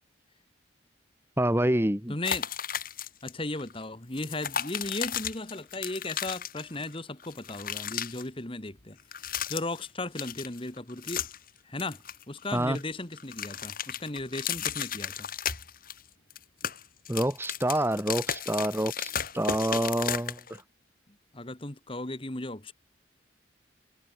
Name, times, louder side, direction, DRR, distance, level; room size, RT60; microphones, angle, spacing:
voice 1, 1.4-2.1 12.5-12.8 17.1-20.4, right 1 dB, 10° right, 1.3 m, -27 dB
voice 2, 2.1-2.5 3.2-9.0 9.5-11.3 11.7-15.3 21.3-22.7, left 2 dB, 30° left, 2.0 m, -36 dB
sound 1, 2.2-3.3 3.6-3.7 4.1-6.9 7.2-8.2 9.0-9.9 10.2-11.5 11.8-12.8 13.1-16.0 16.3-20.6, left 8 dB, 50° left, 6.9 m, -34 dB
head